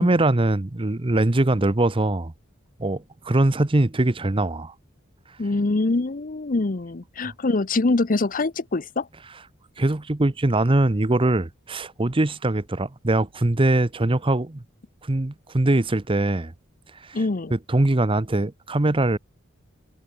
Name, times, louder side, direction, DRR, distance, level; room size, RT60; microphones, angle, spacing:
voice 1, 0.0-2.3 2.8-4.7 9.8-14.6 15.0-16.5 17.0-17.2 17.5-19.2, right 2 dB, 25° right, 0.8 m, -22 dB
voice 2, 5.4-9.1 17.1-17.5, left 3 dB, 40° left, 0.7 m, -24 dB
head